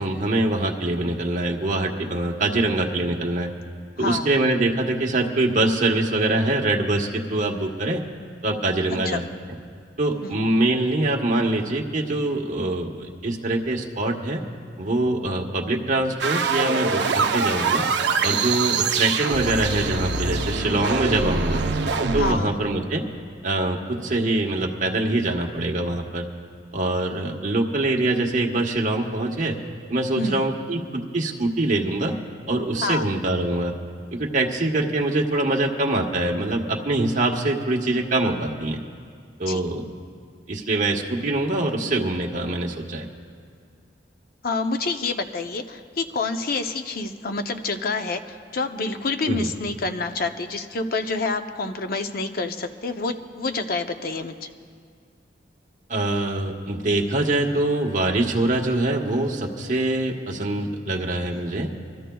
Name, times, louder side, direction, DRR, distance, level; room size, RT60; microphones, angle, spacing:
voice 1, 0.0-3.5 4.0-8.0 8.4-9.2 10.0-14.4 14.8-17.8 18.2-21.6 22.1-23.0 23.4-26.3 26.7-29.6 29.9-32.1 32.5-33.7 34.1-38.8 39.4-39.8 40.5-43.1 49.3-49.5 55.9-61.7, right 2 dB, 45° right, 0 dB, 1.2 m, -24 dB
voice 2, 4.0-4.4 9.1-9.2 10.2-10.4 22.2-22.6 30.2-30.5 32.8-33.1 39.5-39.6 44.4-54.5, left 3 dB, 55° left, 7 dB, 0.7 m, -28 dB
sound 1, 16.2-22.3, right 4 dB, 70° right, 0.7 m, -24 dB
27.5 x 13.5 x 2.3 m, 2.2 s
head